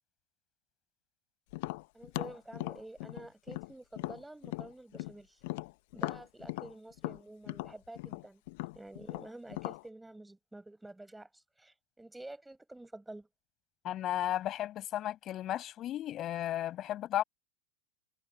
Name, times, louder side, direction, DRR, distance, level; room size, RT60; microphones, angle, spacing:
Tap, 1.5-5.1 5.4-9.8, left 24 dB, 50° left, 1.1 m, -39 dB
voice 1, 1.9-5.4 5.9-8.4 8.7-13.3, right 2 dB, 5° right, 7.9 m, -49 dB
voice 2, 13.8-17.2, left 12 dB, 30° left, 6.7 m, -34 dB
figure-of-eight pair, 90°, 0 cm